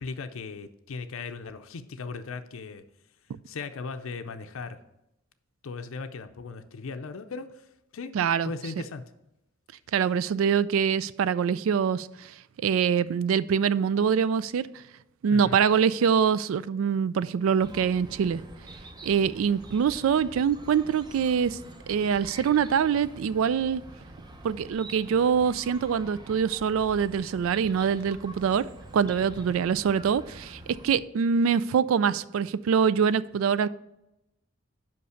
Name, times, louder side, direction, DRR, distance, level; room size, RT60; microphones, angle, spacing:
voice 1, 0.0-2.8 3.5-4.8 5.6-8.1 8.4-9.0 10.2-10.3 15.3-15.6 29.4-29.6, left 4 dB, 80° left, 8 dB, 0.5 m, -38 dB
voice 2, 8.1-8.5 9.9-12.3 12.6-14.6 15.2-18.4 19.0-21.6 21.9-23.8 24.4-33.7, right 7 dB, 80° right, 17 dB, 0.3 m, -24 dB
Chirp tweet, 17.6-31.0, right 1 dB, 20° right, 0.7 m, -46 dB
5.5 x 5.3 x 6.4 m, 0.88 s
head